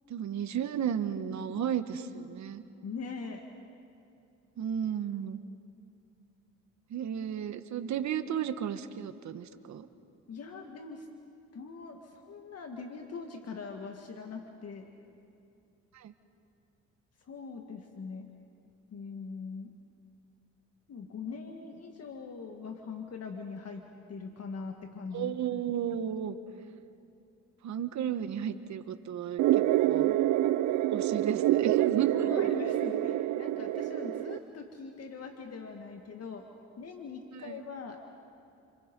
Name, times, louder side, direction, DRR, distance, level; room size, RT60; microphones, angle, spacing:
voice 1, 0.1-2.6 4.6-5.4 6.9-9.9 15.9-16.1 25.1-26.4 27.6-30.2 30.9-32.3 37.3-37.6, right 9 dB, 70° right, 10 dB, 1.4 m, -33 dB
voice 2, 2.8-3.5 10.3-11.1 11.5-14.9 17.2-18.3 18.9-19.7 20.9-23.8 24.1-25.7 32.1-36.4 36.8-38.0, left 4 dB, 55° left, 3 dB, 2.0 m, -42 dB
sound 1, 29.4-34.4, right 14 dB, 90° right, 0.7 m, -27 dB
29.0 x 28.5 x 5.4 m, 2.7 s
cardioid pair, 90°, 30 cm